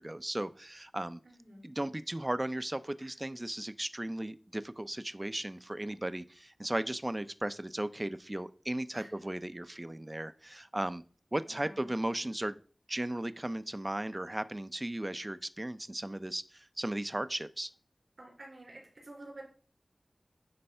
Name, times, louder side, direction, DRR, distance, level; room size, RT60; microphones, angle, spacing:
voice 1, 0.0-1.2 1.6-11.0 11.3-12.6 12.9-17.7, right 1 dB, 25° right, 14 dB, 0.4 m, -36 dB
voice 2, 1.2-1.7 3.0-3.1 8.9-9.1 11.4-11.9 18.2-19.4, right 1 dB, 80° right, -1 dB, 3.4 m, -50 dB
9.7 x 3.3 x 5.4 m, 0.42 s
wide cardioid pair, 60°, 0 cm